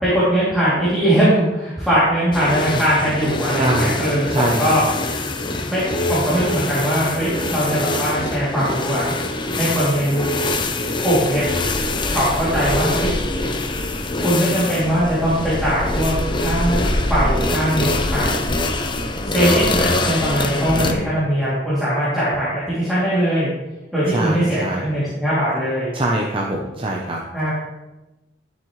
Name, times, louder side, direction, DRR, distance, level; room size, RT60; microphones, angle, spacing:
voice 1, 0.0-4.8 5.7-9.0 9.5-10.3 11.0-11.4 12.1-13.2 14.2-18.5 19.2-23.5 23.9-25.9 27.3-27.5, equal, ahead, -11 dB, 2.9 m, -20 dB
sound 1, 2.3-20.9, left 2 dB, 25° left, 0.7 m, -24 dB
voice 2, 3.5-4.8 20.7-21.2 24.1-24.9 25.9-27.2, right 1 dB, 30° right, -1 dB, 0.8 m, -24 dB
12.0 x 7.2 x 3.2 m, 1.0 s
head